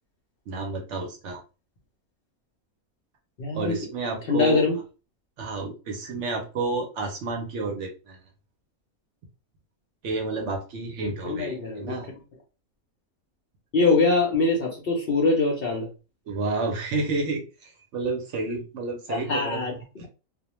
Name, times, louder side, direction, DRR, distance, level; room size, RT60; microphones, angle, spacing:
voice 1, 0.5-1.4 3.5-4.6 5.4-8.2 10.0-12.1 16.3-20.1, right 3 dB, 65° right, 2 dB, 0.8 m, -30 dB
voice 2, 3.4-3.8 4.3-4.8 11.0-12.0 13.7-15.9 19.1-19.7 20.0-20.1, left 3 dB, 55° left, 0 dB, 0.7 m, -23 dB
2.4 x 2.1 x 2.9 m, 0.32 s
omnidirectional pair, 1.5 m